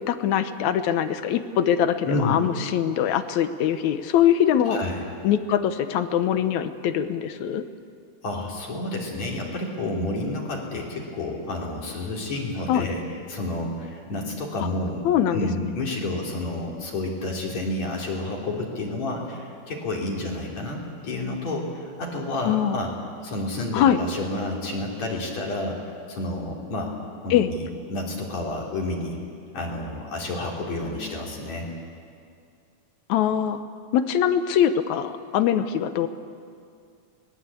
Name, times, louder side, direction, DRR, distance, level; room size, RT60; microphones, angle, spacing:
voice 1, 0.1-4.8 5.2-7.6 12.7-12.9 15.0-15.5 22.4-22.8 23.7-24.0 27.3-27.5 33.1-33.6 33.9-36.1, left 9 dB, 70° left, 11 dB, 2.0 m, -22 dB
voice 2, 2.1-2.5 4.6-5.0 8.2-13.0 13.3-15.1 15.3-22.9 23.2-26.9 27.2-29.2 29.5-31.7, left 2 dB, 55° left, -1 dB, 4.3 m, -30 dB
23.5 x 19.5 x 8.4 m, 2.4 s
omnidirectional pair, 3.8 m